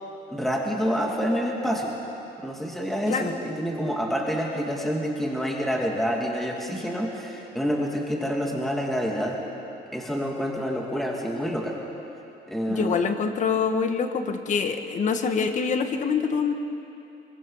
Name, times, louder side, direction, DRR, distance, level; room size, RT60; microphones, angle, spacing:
voice 1, 0.3-2.0 2.4-9.4 9.9-11.8 12.5-13.0, equal, ahead, -1 dB, 2.7 m, -27 dB
voice 2, 12.7-16.5, left 5 dB, 45° left, 6 dB, 1.8 m, -25 dB
25.5 x 23.5 x 5.8 m, 2.8 s
cardioid pair, 110°, 17 cm